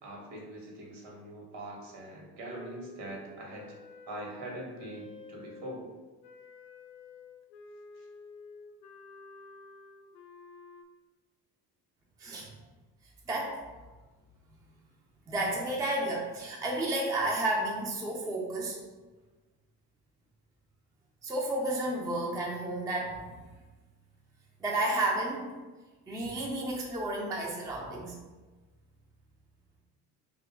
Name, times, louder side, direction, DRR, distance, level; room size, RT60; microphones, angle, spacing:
voice 1, 0.0-3.8 4.1-5.9 8.0-8.1, right 1 dB, 60° right, -1 dB, 1.2 m, -43 dB
Wind instrument woodwind instrument, 2.5-5.8 6.2-10.8, left 3 dB, 75° left, 0.5 m, -51 dB
voice 2, 13.3-13.6 15.3-18.8 21.2-23.5 24.6-25.5 26.1-28.2, right 1 dB, 10° right, -2 dB, 0.4 m, -31 dB
2.7 x 2.4 x 3.5 m, 1.3 s
hypercardioid pair, 55°, 50 cm